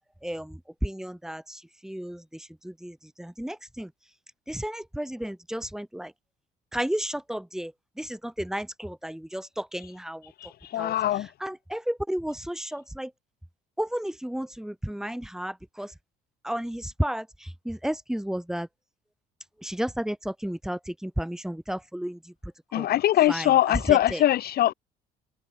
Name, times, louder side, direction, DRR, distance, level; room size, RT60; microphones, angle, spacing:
voice 1, 0.2-3.9 4.5-6.1 6.7-10.3 10.8-13.1 13.8-15.9 16.4-18.7 19.6-22.9 23.3-24.2, equal, 5° right, 7.3 m, -33 dB
voice 2, 10.7-11.3 22.7-24.7, left 13 dB, 65° left, 2.9 m, -22 dB
cardioid pair, 110°, 17 cm